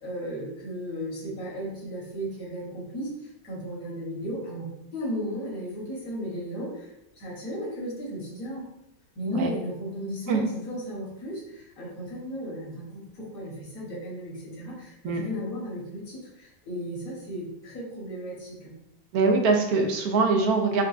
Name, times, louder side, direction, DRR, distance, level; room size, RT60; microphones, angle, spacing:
voice 1, 0.0-3.1 3.4-4.7 4.9-6.9 7.2-8.7 9.1-18.7, equal, 70° left, -4 dB, 1.6 m, -35 dB
voice 2, 19.1-20.8, right 4 dB, 80° right, 3 dB, 1.1 m, -23 dB
5.2 x 2.2 x 2.4 m, 0.85 s
omnidirectional pair, 1.6 m